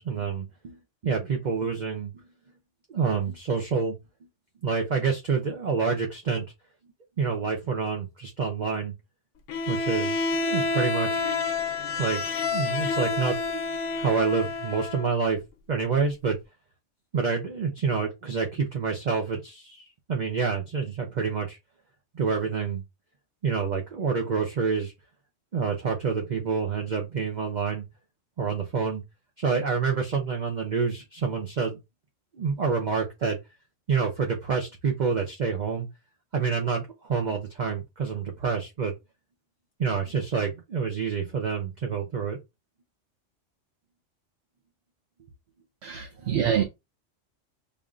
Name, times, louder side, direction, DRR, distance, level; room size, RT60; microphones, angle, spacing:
voice 1, 0.0-2.2 2.9-4.0 4.6-6.5 7.2-8.9 9.7-11.4 12.0-15.4 15.7-16.4 17.1-21.6 22.1-22.8 23.4-24.9 25.5-27.8 28.4-29.0 29.4-31.8 32.3-33.4 33.9-35.9 36.3-38.9 39.8-42.4 46.2-46.4, right 5 dB, 45° right, 0.6 m, -28 dB
Bowed string instrument, 9.5-15.1, left 4 dB, 80° left, 1.0 m, -28 dB
voice 2, 45.8-46.6, right 8 dB, 65° right, 0.9 m, -25 dB
5.1 x 2.6 x 2.4 m
omnidirectional pair, 1.3 m